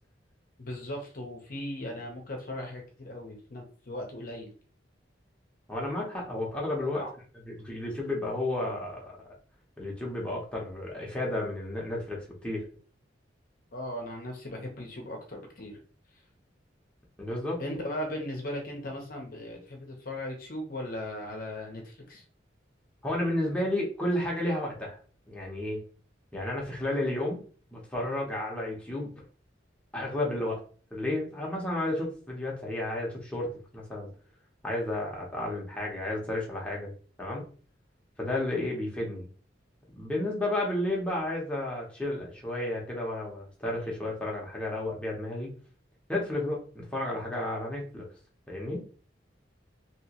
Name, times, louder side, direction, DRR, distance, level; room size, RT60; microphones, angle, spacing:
voice 1, 0.6-4.5 6.8-7.1 13.7-15.8 17.6-22.2, left 1 dB, 50° left, 1 dB, 0.8 m, -38 dB
voice 2, 5.7-7.0 7.5-9.1 9.8-12.7 17.2-17.6 23.0-25.0 25.3-25.8 26.3-27.4 27.7-29.1 29.9-30.6 30.9-33.5 33.7-34.1 34.6-36.9 37.2-37.4 38.2-39.3 40.0-45.5 46.1-48.1 48.5-48.8, left 1 dB, 5° left, -3 dB, 0.9 m, -32 dB
3.0 x 3.0 x 2.9 m, 0.41 s
head